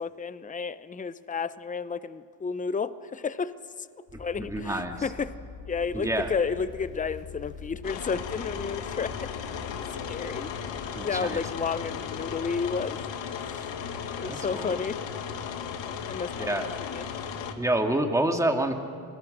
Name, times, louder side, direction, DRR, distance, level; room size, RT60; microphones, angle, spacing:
voice 1, 0.0-3.5 4.2-5.4 5.7-9.3 10.1-10.5 10.9-13.0 13.4-13.7 14.2-15.0 16.1-17.1, left 5 dB, 15° left, 14 dB, 0.7 m, -32 dB
sound 1, 4.1-13.2, left 4 dB, 45° left, 5.2 m, -45 dB
voice 2, 4.4-5.0 5.9-6.3 11.0-11.4 14.2-14.8 16.4-16.6 17.6-18.7, right 1 dB, 5° right, 3 dB, 2.1 m, -27 dB
sound 2, 7.8-17.5, left 7 dB, 75° left, 1.8 m, -36 dB
27.0 x 19.5 x 6.6 m, 2.3 s
cardioid pair, 95°, 45 cm